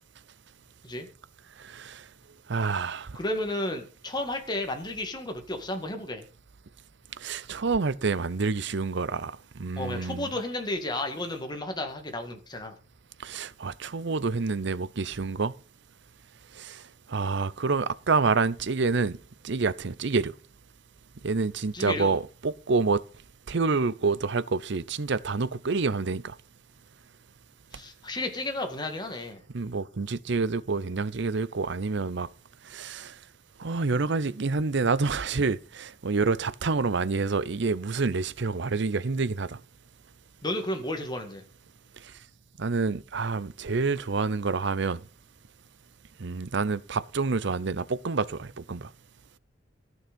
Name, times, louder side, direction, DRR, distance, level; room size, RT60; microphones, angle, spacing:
voice 1, 1.6-2.0 2.5-3.2 7.2-10.3 13.2-15.5 16.5-16.8 17.1-19.2 19.4-20.3 21.2-23.0 23.5-26.4 29.5-32.3 32.6-33.2 33.6-39.6 42.6-45.0 46.2-48.9, right 4 dB, 65° right, 0.7 m, -28 dB
voice 2, 3.2-6.2 9.8-12.8 21.7-22.2 27.7-29.4 40.4-41.4, left 1 dB, 25° left, 2.1 m, -32 dB
14.0 x 6.4 x 5.2 m
head